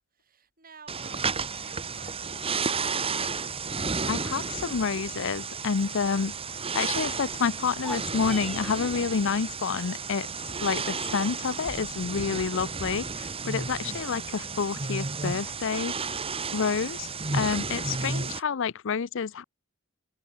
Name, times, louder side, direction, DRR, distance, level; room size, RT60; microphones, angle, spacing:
voice 1, 0.1-3.2 5.6-6.0, right 5 dB, 45° right, 7.7 m, -54 dB
sound 1, 0.9-18.4, right 4 dB, 25° right, 2.2 m, -32 dB
voice 2, 4.1-6.3 6.7-10.3 10.6-15.9 16.5-19.4, left 6 dB, 65° left, 0.5 m, -29 dB
sound 2, 7.7-8.9, left 1 dB, ahead, 0.7 m, -39 dB
open air
head